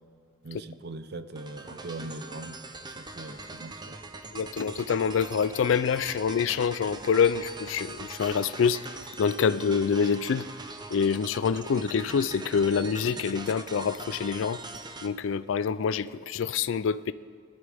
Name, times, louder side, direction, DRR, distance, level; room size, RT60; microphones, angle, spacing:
voice 1, 0.4-4.0, right 2 dB, 55° right, 11 dB, 0.6 m, -41 dB
sound 1, 1.4-15.1, right 3 dB, 20° right, 0.7 m, -42 dB
voice 2, 4.3-8.8 9.2-10.5 10.9-14.6 15.0-17.1, left 6 dB, 75° left, 16 dB, 0.4 m, -26 dB
20.0 x 12.5 x 3.5 m, 2.4 s
head